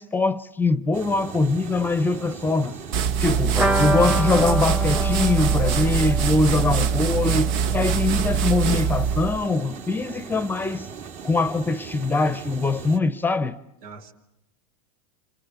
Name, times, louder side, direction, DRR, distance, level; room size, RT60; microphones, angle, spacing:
voice 1, 0.0-2.8 3.2-10.9 11.2-13.6, left 3 dB, 10° left, 1.0 m, -23 dB
sound 1, 0.9-13.0, right 7 dB, 35° right, 2.6 m, -39 dB
sound 2, 2.9-9.4, right 7 dB, 55° right, 1.5 m, -23 dB
sound 3, 3.5-9.2 9.4-9.5 9.8-9.9, equal, 5° right, 1.3 m, -28 dB
voice 2, 6.7-7.1 13.8-14.1, right 5 dB, 75° right, 4.1 m, -41 dB
29.0 x 27.0 x 7.2 m
supercardioid pair, 120°, 18 cm